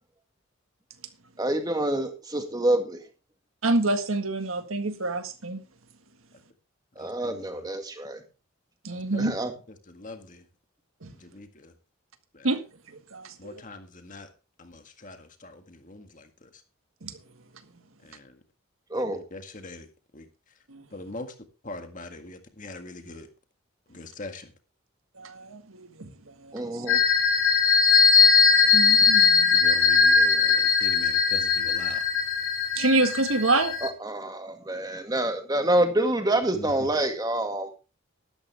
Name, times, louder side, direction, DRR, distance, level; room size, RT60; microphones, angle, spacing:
voice 1, 1.4-3.0 7.0-8.2 9.2-9.5 18.9-19.2 26.5-27.0 30.2-30.4 33.8-37.7, right 1 dB, 20° right, 2.0 m, -27 dB
voice 2, 3.6-5.6 8.8-9.3 11.0-11.1 12.4-12.6 12.9-13.6 17.0-17.2 20.7-20.8 25.2-26.1 26.4-26.8 28.7-29.6 32.7-33.8, right 2 dB, 85° right, 1.7 m, -27 dB
voice 3, 7.0-7.7 8.9-9.3 9.9-10.4 11.2-11.7 12.3-12.5 13.4-14.3 14.6-16.5 18.0-18.4 18.9-19.9 20.1-20.3 20.9-21.3 21.6-23.3 23.9-24.5 29.6-32.0 36.5-36.7, left 2 dB, 40° left, 1.8 m, -42 dB
sound 1, 26.9-33.9, left 5 dB, 90° left, 2.2 m, -20 dB
12.5 x 12.5 x 3.5 m
head